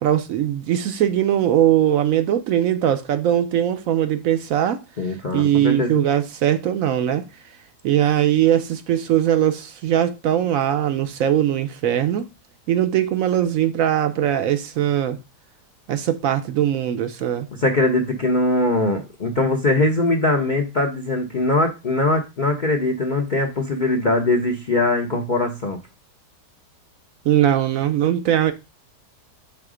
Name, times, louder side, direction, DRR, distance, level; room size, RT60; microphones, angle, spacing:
voice 1, 0.0-4.8 5.3-7.3 7.8-12.3 12.7-15.2 15.9-17.5 27.2-28.5, right 11 dB, 65° right, 0.9 m, -20 dB
voice 2, 5.0-6.0 17.6-25.8, left 2 dB, 55° left, 0.5 m, -21 dB
5.6 x 3.7 x 4.8 m
omnidirectional pair, 1.8 m